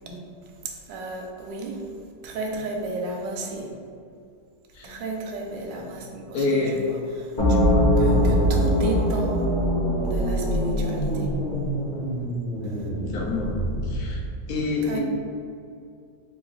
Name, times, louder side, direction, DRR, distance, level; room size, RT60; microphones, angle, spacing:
voice 1, 0.9-1.9 2.2-3.7 4.8-9.3 10.0-11.3 12.6-12.7 14.8-15.0, right 2 dB, 85° right, 1 dB, 1.3 m, -33 dB
voice 2, 6.3-6.8 13.1-13.5 13.8-14.2 14.5-15.0, left 3 dB, 70° left, -2 dB, 1.0 m, -27 dB
sound 1, 7.4-14.3, equal, 35° left, 0.8 m, -23 dB
3.8 x 2.4 x 3.7 m, 2.4 s
omnidirectional pair, 1.9 m